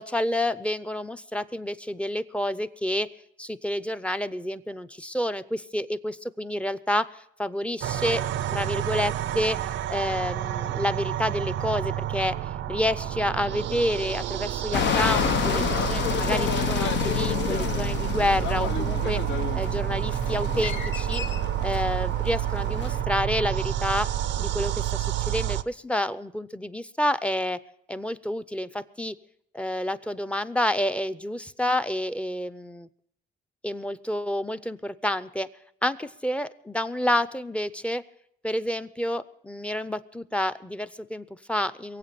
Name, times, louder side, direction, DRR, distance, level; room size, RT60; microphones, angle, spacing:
voice 1, 0.0-3.1 3.4-8.3 8.5-12.3 12.7-21.2 21.6-24.1 24.4-27.6 27.9-29.1 29.5-32.9 33.6-35.5 35.8-38.0 38.4-42.0, left 1 dB, 5° left, 12 dB, 0.6 m, -29 dB
sound 1, 7.8-25.6, right 12 dB, 70° right, 0.5 m, -29 dB
sound 2, 14.7-23.0, left 8 dB, 65° left, 0.8 m, -29 dB
22.5 x 8.2 x 5.8 m, 0.72 s
cardioid pair, 90°, 20 cm